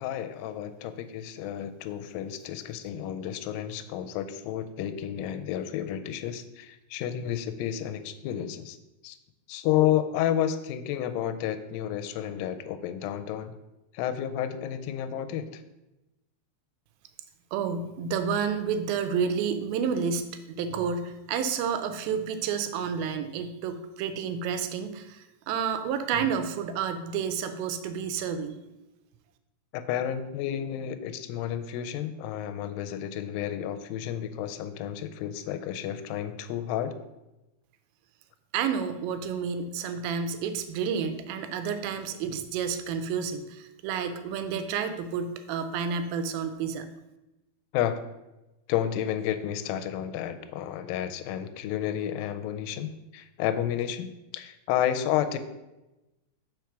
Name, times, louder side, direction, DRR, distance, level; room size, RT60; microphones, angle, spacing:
voice 1, 0.0-8.8 9.0-9.2 9.5-13.5 13.9-15.6 29.7-36.9 47.7-48.0 48.7-54.1 54.3-55.4, left 10 dB, 85° left, 10 dB, 2.2 m, -31 dB
voice 2, 17.5-28.6 38.5-46.9, right 6 dB, 85° right, 9 dB, 2.5 m, -30 dB
4.9 x 4.5 x 6.0 m, 0.99 s
omnidirectional pair, 4.1 m